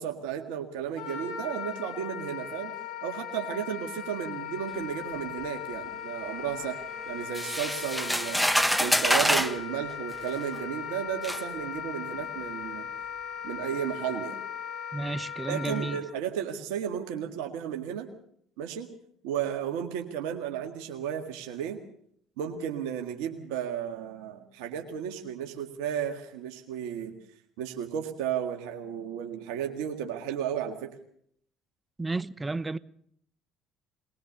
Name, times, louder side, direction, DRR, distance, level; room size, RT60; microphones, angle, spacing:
voice 1, 0.0-2.7 3.0-6.8 7.1-8.5 8.8-12.9 13.4-14.4 15.5-18.1 18.6-18.9 19.2-21.8 22.4-27.1 27.6-30.9, right 9 dB, 75° right, 1.8 m, -33 dB
Wind instrument woodwind instrument, 1.0-16.0, left 8 dB, 70° left, 4.5 m, -38 dB
sound 1, 7.3-9.6 10.5-10.6 11.2-11.4, equal, ahead, 1.2 m, -25 dB
voice 2, 14.9-16.0 32.0-32.8, right 3 dB, 20° right, 0.9 m, -32 dB
21.0 x 20.0 x 6.7 m
hypercardioid pair, 60°, 0 cm